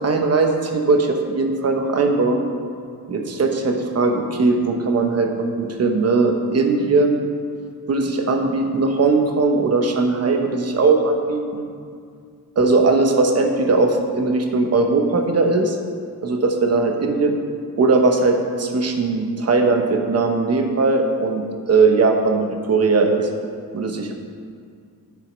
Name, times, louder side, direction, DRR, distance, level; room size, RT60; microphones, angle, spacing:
voice 1, 0.0-2.4 3.1-7.2 7.9-11.7 12.6-15.8 16.2-17.4 17.8-23.3 23.7-24.1, right 3 dB, 40° right, 4 dB, 1.0 m, -19 dB
9.4 x 7.6 x 5.2 m, 2.2 s
wide cardioid pair, 170°, 38 cm